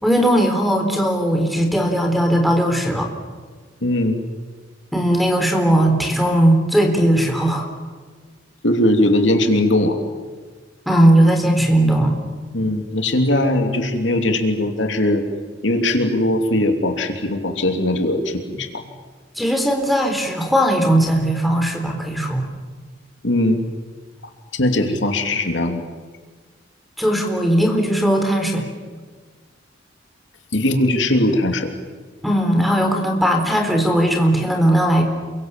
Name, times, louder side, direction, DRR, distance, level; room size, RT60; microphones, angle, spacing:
voice 1, 0.0-3.1 4.9-7.7 10.9-12.1 19.4-22.5 27.0-28.6 32.2-35.0, right 1 dB, ahead, 4 dB, 4.0 m, -18 dB
voice 2, 3.8-4.2 8.6-10.0 12.5-15.2 15.6-18.8 23.2-23.6 24.5-25.9 30.5-31.7, left 1 dB, 70° left, 5 dB, 2.9 m, -19 dB
29.0 x 23.5 x 7.5 m, 1.5 s
head